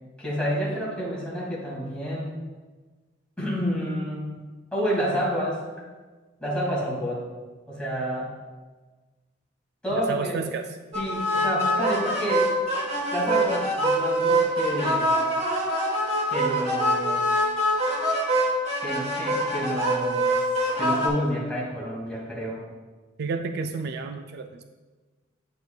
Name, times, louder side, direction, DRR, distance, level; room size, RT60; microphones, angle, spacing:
voice 1, 0.2-2.4 3.4-4.5 4.7-5.6 6.4-7.3 7.7-8.3 9.8-10.4 10.9-12.5 13.1-15.1 16.3-17.3 18.8-20.3 20.8-22.6, equal, 5° left, -6 dB, 2.3 m, -29 dB
voice 2, 9.9-10.7 23.2-24.6, right 4 dB, 55° right, 6 dB, 0.3 m, -31 dB
sound 1, 10.9-21.1, right 1 dB, 35° right, 1.4 m, -24 dB
9.6 x 6.4 x 2.3 m, 1.3 s
head